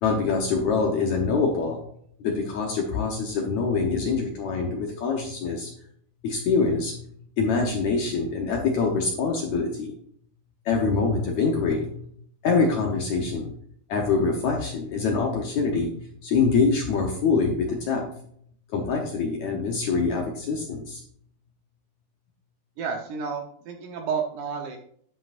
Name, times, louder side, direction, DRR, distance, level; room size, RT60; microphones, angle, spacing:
voice 1, 0.0-1.8 2.2-5.7 6.2-6.9 7.4-9.9 10.6-12.1 12.4-13.5 13.9-15.9 16.2-18.1 18.7-21.0, left 4 dB, 75° left, 0 dB, 1.6 m, -24 dB
voice 2, 22.8-24.8, right 6 dB, 75° right, 2 dB, 1.9 m, -31 dB
10.5 x 7.9 x 2.5 m, 0.64 s
omnidirectional pair, 4.6 m